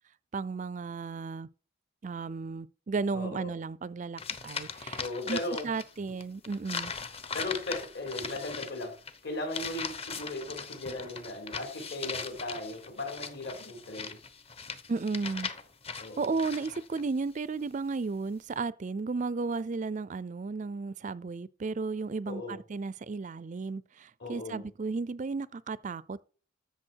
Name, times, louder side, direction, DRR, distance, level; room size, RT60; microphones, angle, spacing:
voice 1, 0.3-1.5 2.0-5.0 5.3-5.4 5.6-6.9 14.9-15.5 16.2-26.2, right 4 dB, 40° right, 0.4 m, -34 dB
voice 2, 3.1-3.5 5.0-5.7 6.1-6.2 7.3-9.0 9.2-14.2 16.0-16.3 22.3-22.6 24.2-24.7, left 2 dB, 60° left, 4.4 m, -37 dB
sound 1, 4.2-5.9 6.2-17.0, left 5 dB, 30° left, 0.9 m, -39 dB
14.0 x 6.9 x 4.6 m
head